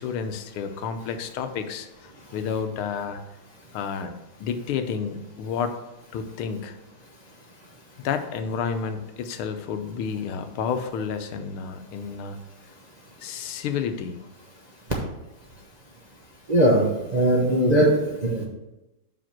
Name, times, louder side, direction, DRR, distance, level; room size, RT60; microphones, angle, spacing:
voice 1, 0.0-1.9 2.3-3.2 3.7-4.1 4.4-5.8 6.1-6.8 8.0-12.4 13.2-14.2, left 6 dB, 85° left, 8 dB, 1.6 m, -30 dB
voice 2, 16.5-18.4, right 1 dB, 35° right, -3 dB, 0.6 m, -20 dB
5.8 x 5.0 x 6.0 m, 0.99 s
omnidirectional pair, 2.3 m